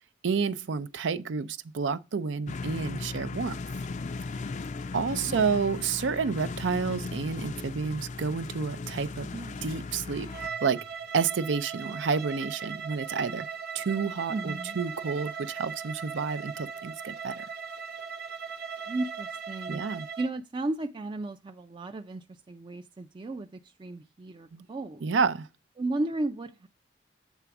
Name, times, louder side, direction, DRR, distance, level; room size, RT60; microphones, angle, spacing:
voice 1, 0.2-3.6 4.9-9.3 9.6-10.8 11.1-13.5 13.7-17.4 19.7-20.1 24.5-24.7 25.0-25.5, right 5 dB, 80° right, 0.5 m, -30 dB
sound 1, 2.5-10.5, left 3 dB, 40° left, 0.4 m, -37 dB
sound 2, 5.0-11.4, left 3 dB, 90° left, 0.8 m, -53 dB
voice 2, 5.2-5.5 9.3-9.6 14.3-14.8 18.9-19.8 20.2-25.1 25.8-26.7, right 2 dB, 25° right, 0.4 m, -34 dB
Bowed string instrument, 10.3-20.3, right 6 dB, 55° right, 0.9 m, -38 dB
8.1 x 3.4 x 5.9 m
head